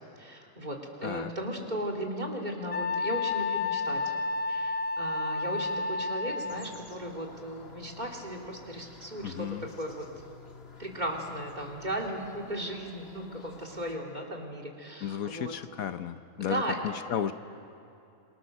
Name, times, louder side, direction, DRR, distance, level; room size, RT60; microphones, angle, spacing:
voice 1, 0.2-4.0 4.5-9.5 9.8-10.1 10.8-15.6 16.5-16.8, right 1 dB, 30° right, 2 dB, 2.8 m, -36 dB
Wind instrument woodwind instrument, 2.7-6.8, left 3 dB, 25° left, 0.9 m, -31 dB
sound 1, 6.5-14.0, left 4 dB, 45° left, 1.8 m, -51 dB
voice 2, 9.2-9.7 15.0-17.3, left 9 dB, 70° left, 10 dB, 1.2 m, -34 dB
27.5 x 24.0 x 6.6 m, 2.7 s
omnidirectional pair, 1.5 m